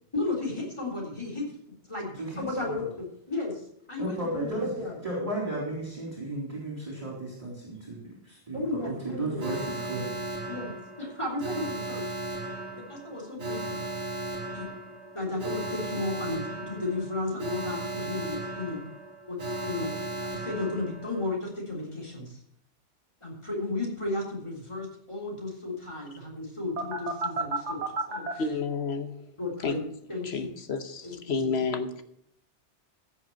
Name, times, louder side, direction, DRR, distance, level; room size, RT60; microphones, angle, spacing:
voice 1, 0.1-1.5 1.9-5.0 8.5-9.4 10.5-12.5 12.7-13.8 14.5-14.7 15.1-18.8 19.3-19.9 20.2-22.4 23.2-28.4 29.4-29.8 30.1-30.5 31.0-31.2, left 2 dB, 25° left, -1 dB, 3.6 m, -34 dB
voice 2, 2.2-2.9 4.0-4.8 5.0-10.3, right 1 dB, 30° right, -3 dB, 3.6 m, -34 dB
Alarm, 9.4-21.3 26.8-28.3, right 2 dB, 80° right, 1.9 m, -35 dB
voice 3, 28.4-29.2 29.6-29.8 30.2-32.0, left 4 dB, 70° left, 9 dB, 1.2 m, -30 dB
15.5 x 6.7 x 5.7 m, 0.69 s
omnidirectional pair, 1.1 m